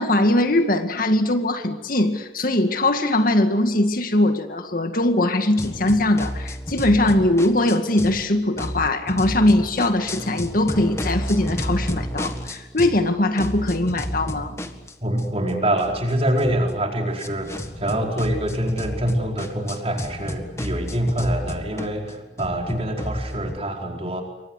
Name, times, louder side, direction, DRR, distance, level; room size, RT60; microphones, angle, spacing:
voice 1, 0.0-14.5, left 1 dB, 50° left, 7 dB, 2.0 m, -21 dB
sound 1, 5.6-8.2 8.6-13.1 13.4-23.6, equal, 15° left, 1.7 m, -32 dB
voice 2, 15.0-24.2, right 1 dB, 35° right, 2 dB, 4.7 m, -25 dB
28.5 x 24.0 x 8.1 m, 1.0 s
head